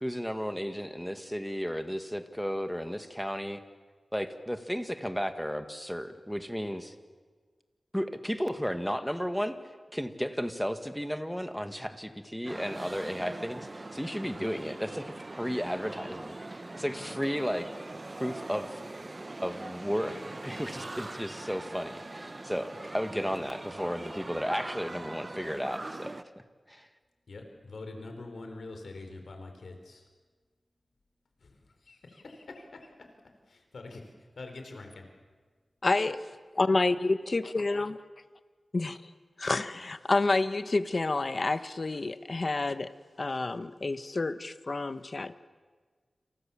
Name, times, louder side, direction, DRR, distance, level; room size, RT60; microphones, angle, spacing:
voice 1, 0.0-3.6 4.1-6.9 7.9-9.6 9.9-17.7 18.2-18.8 19.4-26.1 26.7-26.9, equal, ahead, 8 dB, 1.9 m, -34 dB
sound 1, 12.4-26.2, right 2 dB, 35° right, 0.9 m, -42 dB
voice 2, 27.3-30.1 31.4-32.9 33.5-34.1 34.4-35.1, left 3 dB, 85° left, 5 dB, 4.4 m, -45 dB
voice 3, 35.8-36.3 36.6-38.0 38.7-39.0 39.4-42.9 43.2-45.3, left 3 dB, 45° left, 12 dB, 1.2 m, -28 dB
29.0 x 27.5 x 7.3 m, 1.5 s
wide cardioid pair, 100°, 0 cm